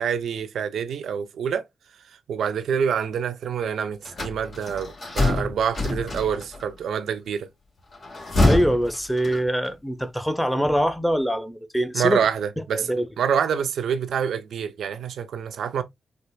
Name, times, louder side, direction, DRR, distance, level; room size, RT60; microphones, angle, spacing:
voice 1, 0.0-1.6 2.3-7.5 11.9-12.9 13.2-15.8, right 7 dB, 80° right, 0.4 m, -26 dB
sound 1, 4.0-6.6 7.9-9.7, left 2 dB, 65° left, 1.8 m, -25 dB
voice 2, 8.4-12.2 12.7-13.1, equal, 5° left, 0.7 m, -23 dB
4.4 x 2.5 x 2.2 m
supercardioid pair, 50°, 0 cm